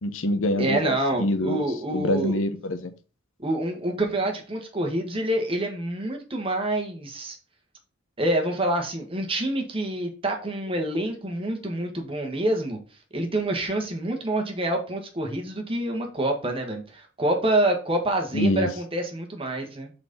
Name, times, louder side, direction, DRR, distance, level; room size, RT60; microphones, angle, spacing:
voice 1, 0.0-1.7 1.9-2.9 18.3-18.7, left 1 dB, 80° left, 9 dB, 0.9 m, -25 dB
voice 2, 0.6-2.4 3.4-7.4 8.2-12.8 13.1-19.9, right 1 dB, 25° right, 2 dB, 1.4 m, -27 dB
6.0 x 4.2 x 5.3 m, 0.36 s
head